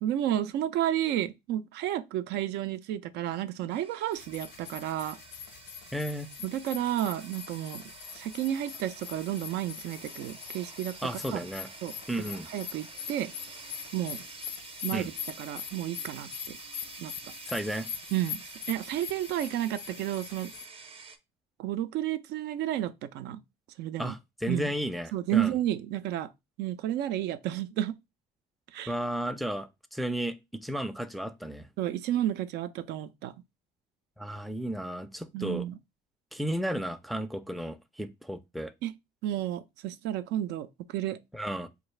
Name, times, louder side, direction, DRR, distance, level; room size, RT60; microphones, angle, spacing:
voice 1, 0.0-5.2 6.4-7.8 8.1-11.0 11.3-11.4 11.8-11.9 12.5-13.3 13.9-14.2 14.8-15.1 15.4-16.6 17.0-17.1 18.1-20.5 21.6-23.4 23.8-24.1 24.5-24.7 25.1-26.3 26.6-28.0 28.7-28.9 31.8-33.3 35.3-35.8 38.8-38.9 39.2-41.2, right 12 dB, 80° right, 0.4 m, -31 dB
sound 1, 3.7-21.2, right 5 dB, 35° right, 0.7 m, -48 dB
sound 2, 4.1-20.7, left 8 dB, 80° left, 0.6 m, -43 dB
voice 2, 5.9-6.3 11.0-11.7 12.1-12.5 14.9-15.1 17.5-17.9 24.0-25.5 28.9-31.7 34.2-35.7 36.3-38.7 41.3-41.7, equal, ahead, 0.4 m, -33 dB
4.5 x 2.4 x 3.2 m
cardioid pair, 110°, 17 cm